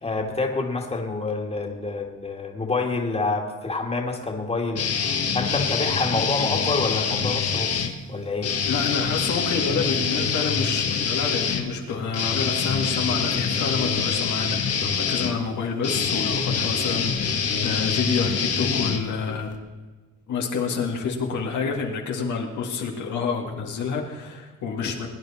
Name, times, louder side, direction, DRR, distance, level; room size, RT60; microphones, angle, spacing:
voice 1, 0.0-4.8 5.3-8.5, left 3 dB, 20° left, 1 dB, 2.3 m, -27 dB
sound 1, 4.8-7.9 8.4-19.6, left 6 dB, 50° left, 1.6 m, -25 dB
voice 2, 8.7-19.5 20.3-25.1, left 5 dB, 75° left, 1 dB, 2.1 m, -28 dB
22.0 x 9.5 x 4.3 m, 1.3 s
cardioid pair, 90°, 30 cm